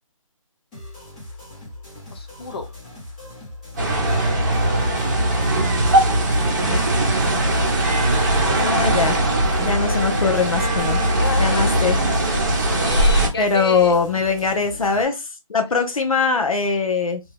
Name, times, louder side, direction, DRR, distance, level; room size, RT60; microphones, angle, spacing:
sound 1, 0.7-15.0, left 1 dB, 10° left, 0.7 m, -40 dB
voice 1, 2.1-2.7 11.2-11.7 12.8-14.0, left 3 dB, 45° left, 0.6 m, -30 dB
sound 2, 3.8-13.3, right 1 dB, 35° right, 0.8 m, -20 dB
voice 2, 8.6-9.2 9.6-11.0 11.4-12.0 13.4-15.2 15.5-17.2, left 5 dB, 85° left, 0.8 m, -21 dB
2.8 x 2.2 x 3.2 m
hypercardioid pair, 165°, 17 cm